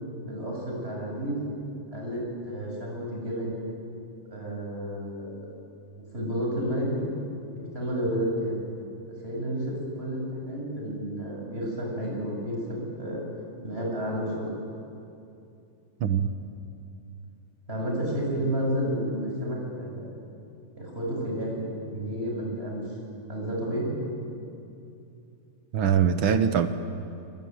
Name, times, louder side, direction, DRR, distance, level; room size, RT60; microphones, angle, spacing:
voice 1, 0.3-1.4 1.9-3.6 4.3-5.5 6.1-7.1 7.7-8.6 9.2-13.2 13.6-14.5 17.7-20.1 20.8-22.8 23.3-23.9, equal, 20° right, -2 dB, 7.5 m, -31 dB
voice 2, 25.7-26.7, right 8 dB, 60° right, 9 dB, 1.4 m, -22 dB
25.5 x 23.5 x 9.5 m, 2.6 s
omnidirectional pair, 3.3 m